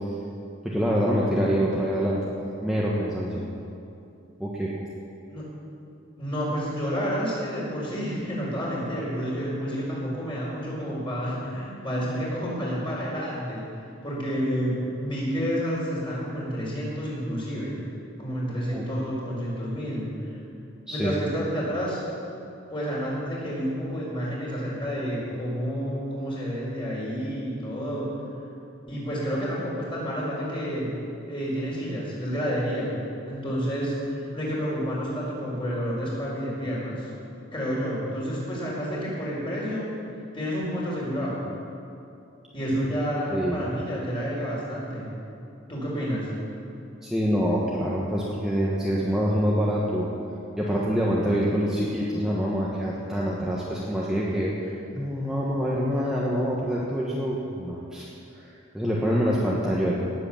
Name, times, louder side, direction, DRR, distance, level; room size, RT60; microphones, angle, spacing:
voice 1, 0.6-2.3 2.6-3.4 4.4-4.7 18.7-18.8 20.9-21.1 43.3-43.6 47.0-50.1 50.6-58.0 58.3-60.0, equal, 5° right, -6 dB, 1.3 m, -26 dB
voice 2, 6.2-13.6 14.0-17.8 18.2-20.3 20.9-22.0 22.7-28.1 28.9-30.9 31.3-37.1 37.5-39.9 40.3-41.4 42.5-45.2 45.7-46.3, equal, 25° left, -6 dB, 4.5 m, -29 dB
18.5 x 8.1 x 7.3 m, 2.7 s
head